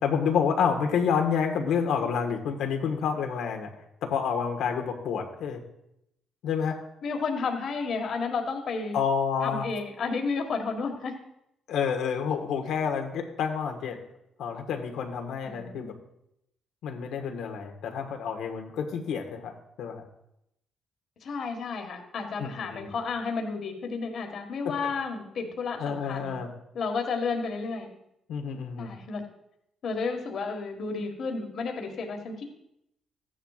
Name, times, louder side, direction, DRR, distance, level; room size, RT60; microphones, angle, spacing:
voice 1, 0.0-3.7 4.0-5.6 6.4-6.8 8.9-9.7 11.7-14.0 14.4-15.9 16.8-20.1 22.4-22.9 25.8-26.5 28.3-28.9, left 6 dB, 85° left, 3 dB, 1.4 m, -29 dB
voice 2, 7.0-9.0 9.4-11.1 15.4-15.9 21.2-26.3 26.7-27.9 28.8-29.2 29.8-32.5, left 4 dB, 60° left, 3 dB, 1.7 m, -32 dB
14.0 x 10.0 x 2.5 m, 0.80 s
cardioid pair, 90°, 0 cm